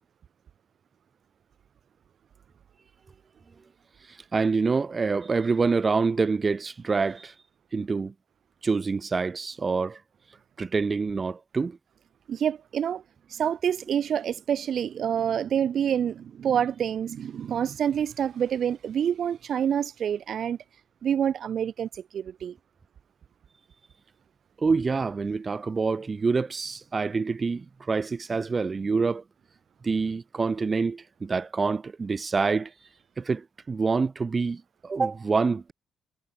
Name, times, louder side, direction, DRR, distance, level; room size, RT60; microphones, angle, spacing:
voice 1, 4.1-7.3 7.7-8.1 8.6-10.0 10.6-11.8 24.6-29.2 29.8-32.7 33.2-35.7, right 4 dB, 35° right, 5.4 m, -26 dB
voice 2, 12.3-13.0 13.3-20.6 21.0-22.6, right 8 dB, 55° right, 5.2 m, -27 dB
figure-of-eight pair, 45°, 0 cm